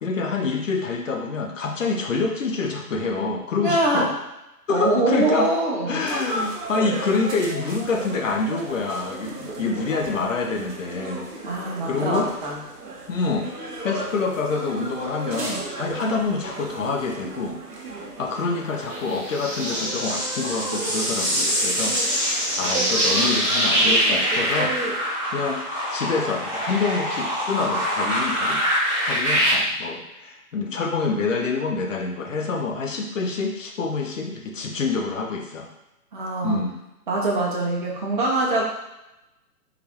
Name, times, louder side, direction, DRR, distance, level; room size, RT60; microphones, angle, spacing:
voice 1, 0.0-4.1 4.7-5.5 5.9-11.3 11.8-12.3 13.1-17.6 18.2-24.8 25.3-25.6 25.9-28.6 29.0-35.7 36.4-36.8, left 4 dB, 55° left, 2 dB, 0.7 m, -26 dB
voice 2, 3.6-4.0 4.7-6.0 11.4-12.6 36.1-36.6 37.1-38.6, right 2 dB, 35° right, -3 dB, 0.8 m, -23 dB
sound 1, 6.0-25.0, right 2 dB, 80° right, 1.0 m, -35 dB
sound 2, 18.9-29.5, equal, 5° right, 0.9 m, -24 dB
3.9 x 3.3 x 3.0 m, 0.93 s
figure-of-eight pair, 135°, 47 cm